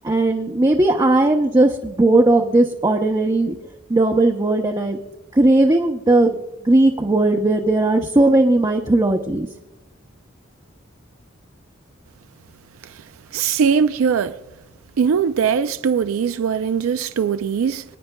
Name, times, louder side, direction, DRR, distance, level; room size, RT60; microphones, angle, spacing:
voice 1, 0.0-3.6 3.9-5.0 5.3-6.4 6.6-9.5, right 2 dB, 20° right, 0.6 m, -17 dB
voice 2, 13.3-14.4 15.0-17.8, right 6 dB, 85° right, 0.4 m, -20 dB
25.5 x 9.2 x 2.2 m
head